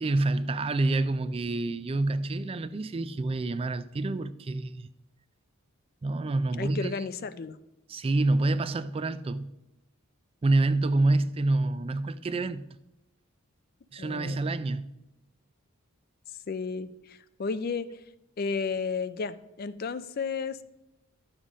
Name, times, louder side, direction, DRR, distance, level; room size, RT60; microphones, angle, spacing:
voice 1, 0.0-4.9 6.0-6.9 7.9-9.5 10.4-12.6 13.9-14.9, right 2 dB, 25° right, 0.3 m, -27 dB
voice 2, 6.6-7.6 14.0-14.4 16.5-18.0 18.4-20.6, left 5 dB, 45° left, 0.4 m, -33 dB
11.5 x 7.3 x 5.0 m
head